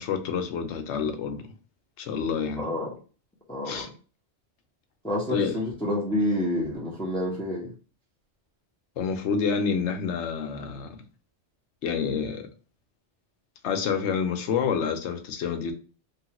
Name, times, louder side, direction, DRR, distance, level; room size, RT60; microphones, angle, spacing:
voice 1, 0.0-1.5 2.0-2.7 3.6-3.9 5.3-5.6 9.0-11.0 11.8-12.5 13.6-15.7, left 6 dB, 80° left, 0.9 m, -28 dB
voice 2, 2.6-2.9 3.5-3.9 5.0-7.7, left 1 dB, 5° left, 0.8 m, -28 dB
3.2 x 2.4 x 2.9 m
omnidirectional pair, 1.2 m